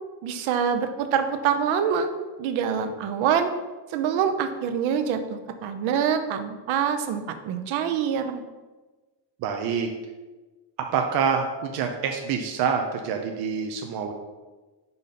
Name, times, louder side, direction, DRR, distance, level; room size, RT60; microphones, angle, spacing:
voice 1, 0.2-2.1 2.4-3.5 3.9-8.4, right 7 dB, 85° right, 8 dB, 0.8 m, -25 dB
voice 2, 9.4-9.9 10.9-14.1, right 6 dB, 55° right, 4 dB, 0.7 m, -26 dB
5.4 x 4.0 x 5.8 m, 1.2 s
cardioid pair, 160°, 46 cm